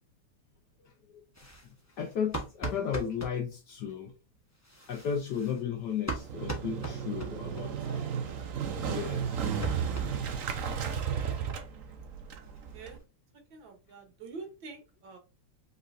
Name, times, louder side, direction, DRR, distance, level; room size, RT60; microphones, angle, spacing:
sound 1, 1.3-3.4 4.5-7.6 7.9-8.0 8.3-8.4 8.7-10.7 11.0-11.1 11.4-11.5 11.8-11.9 12.2-13.0, right 2 dB, 15° left, 0.5 m, -41 dB
voice 1, 2.0-4.1 4.9-7.7 8.8-9.5, left 7 dB, 65° left, 1.2 m, -34 dB
Motorcycle, 6.2-13.0, right 7 dB, 80° right, 0.7 m, -34 dB
voice 2, 7.4-8.8 12.4-13.0 13.5-15.2, right 4 dB, 65° right, 1.8 m, -48 dB
5.1 x 4.0 x 2.6 m
omnidirectional pair, 2.4 m